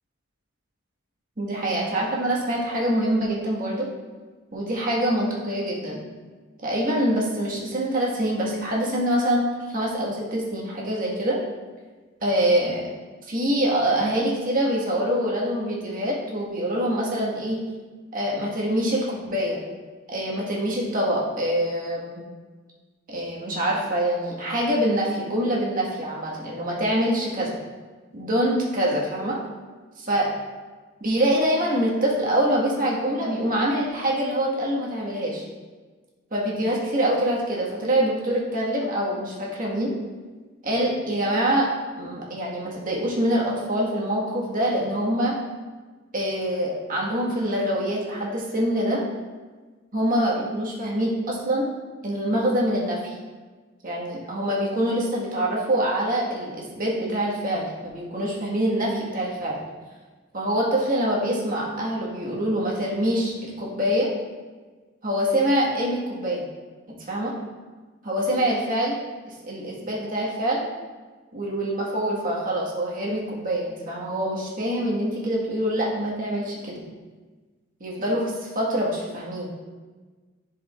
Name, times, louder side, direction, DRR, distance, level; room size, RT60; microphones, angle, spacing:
voice 1, 1.4-3.9 4.5-6.0 6.6-11.4 12.2-12.8 13.3-17.6 18.1-19.6 20.1-22.2 23.1-27.5 28.1-29.4 30.0-30.3 31.0-35.5 36.3-39.9 40.6-41.7 42.0-45.4 46.1-49.0 49.9-51.7 52.0-53.1 53.8-59.6 60.3-64.1 65.0-66.5 67.1-67.3 68.0-69.0 69.4-70.6 71.3-76.8 77.8-79.5, right 1 dB, 45° right, -4 dB, 1.5 m, -25 dB
10.5 x 5.0 x 2.4 m, 1.4 s
head